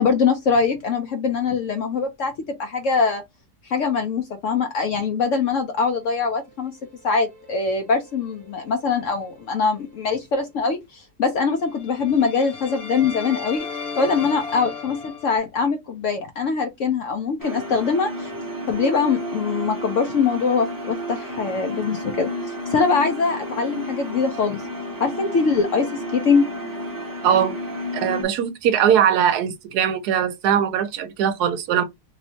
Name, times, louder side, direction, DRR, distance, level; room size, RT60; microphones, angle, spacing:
voice 1, 0.0-2.3 2.6-3.2 3.6-6.7 7.0-13.7 14.0-18.3 18.7-24.6 25.0-26.5, left 5 dB, 65° left, 0.8 m, -23 dB
sound 1, 7.1-8.9 9.2-9.4 11.7-15.4, left 5 dB, 35° left, 1.8 m, -36 dB
sound 2, 17.4-28.2, equal, 20° right, 0.5 m, -31 dB
voice 2, 27.2-27.6 27.9-31.8, right 9 dB, 75° right, 1.1 m, -20 dB
3.1 x 3.1 x 2.7 m
omnidirectional pair, 1.8 m